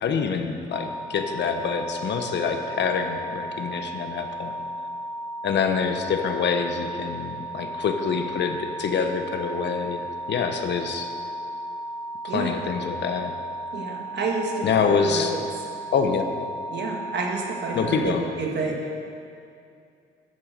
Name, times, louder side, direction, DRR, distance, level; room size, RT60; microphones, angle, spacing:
voice 1, 0.0-4.6 5.4-11.1 12.2-13.3 14.6-15.3 15.9-16.3 17.7-18.2, left 6 dB, 60° left, 5 dB, 1.1 m, -26 dB
sound 1, 0.7-18.0, right 1 dB, ahead, 1.7 m, -35 dB
voice 2, 13.7-15.4 16.7-18.9, right 3 dB, 60° right, 0 dB, 1.9 m, -29 dB
10.5 x 7.7 x 6.7 m, 2.5 s
cardioid pair, 90°, 20 cm